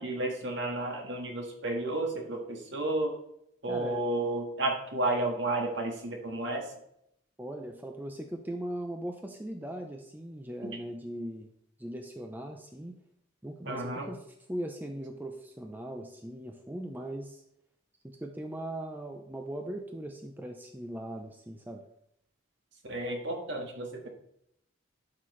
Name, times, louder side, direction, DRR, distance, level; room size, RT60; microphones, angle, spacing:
voice 1, 0.0-3.1 3.6-6.7 10.6-10.7 13.6-14.1 22.8-24.1, right 2 dB, 60° right, 2 dB, 1.7 m, -32 dB
voice 2, 3.7-4.0 7.4-11.5 11.8-12.9 13.4-14.2 14.5-17.4 18.0-21.8, right 1 dB, 10° right, 3 dB, 0.5 m, -39 dB
11.5 x 6.0 x 3.2 m, 0.75 s
head